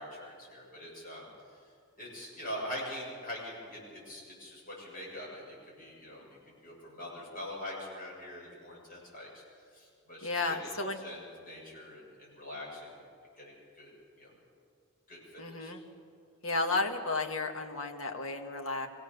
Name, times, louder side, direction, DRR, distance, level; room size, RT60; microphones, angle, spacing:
voice 1, 0.0-1.6 2.0-10.7 11.0-13.1 13.4-13.9 14.2-14.3 15.1-15.7, left 1 dB, 40° left, -4 dB, 7.6 m, -44 dB
voice 2, 10.2-11.0 15.4-15.8 16.4-18.9, left 3 dB, 70° left, 3 dB, 1.7 m, -33 dB
24.0 x 17.0 x 6.9 m, 2.2 s
head